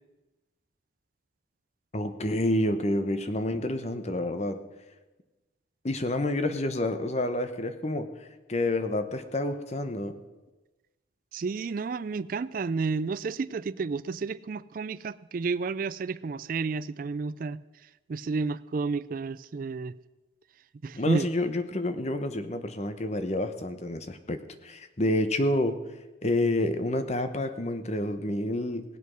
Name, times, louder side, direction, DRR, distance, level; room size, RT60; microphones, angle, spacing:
voice 1, 1.9-4.6 5.8-8.1 8.5-10.1 21.0-25.8 26.2-28.8, left 1 dB, 35° left, 9 dB, 0.9 m, -28 dB
voice 2, 11.3-17.6 18.1-19.9 20.8-21.3, right 4 dB, 45° right, 18 dB, 0.3 m, -31 dB
18.5 x 8.2 x 6.2 m, 1.1 s
head